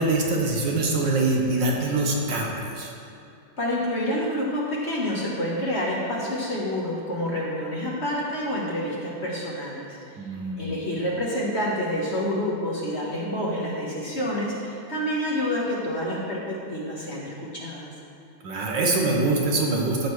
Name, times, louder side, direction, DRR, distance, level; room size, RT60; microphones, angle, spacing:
voice 1, 0.0-2.9 10.2-10.7 18.4-20.1, right 2 dB, 70° right, -1 dB, 1.8 m, -24 dB
voice 2, 3.6-10.0 10.6-17.9, equal, 40° left, -5 dB, 1.4 m, -28 dB
15.0 x 6.7 x 3.2 m, 2.5 s
omnidirectional pair, 2.1 m